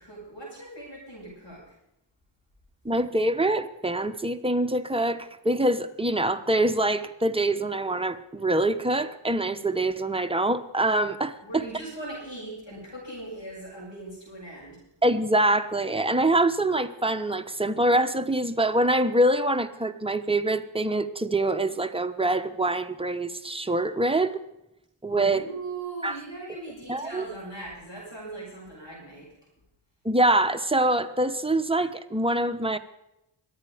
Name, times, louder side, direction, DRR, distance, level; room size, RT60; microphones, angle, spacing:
voice 1, 0.0-1.7 11.4-14.8 25.1-29.3, right 2 dB, 60° left, -10 dB, 7.5 m, -39 dB
voice 2, 2.8-11.7 15.0-24.4 25.0-25.4 26.0-26.2 26.9-27.2 30.0-32.8, right 1 dB, 10° right, 8 dB, 1.0 m, -25 dB
23.0 x 8.8 x 5.1 m, 0.86 s
cardioid pair, 45°, 49 cm